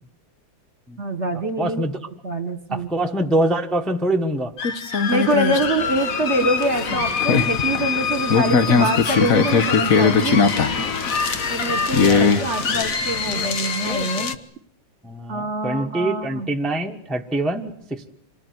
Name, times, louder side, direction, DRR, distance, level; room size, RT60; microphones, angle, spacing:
voice 1, 1.0-1.9 2.2-2.9 5.1-10.5 11.5-14.4 15.3-16.5, right 2 dB, 40° right, 9 dB, 1.8 m, -25 dB
voice 2, 1.6-2.0 2.7-4.5 12.0-12.9 15.0-18.1, right 1 dB, ahead, 3 dB, 1.3 m, -25 dB
sound 1, 4.6-14.3, left 5 dB, 50° left, 1.6 m, -21 dB
Engine / Mechanisms, 5.5-12.8, left 2 dB, 90° left, 4.7 m, -36 dB
26.5 x 19.0 x 9.6 m, 0.68 s
omnidirectional pair, 2.1 m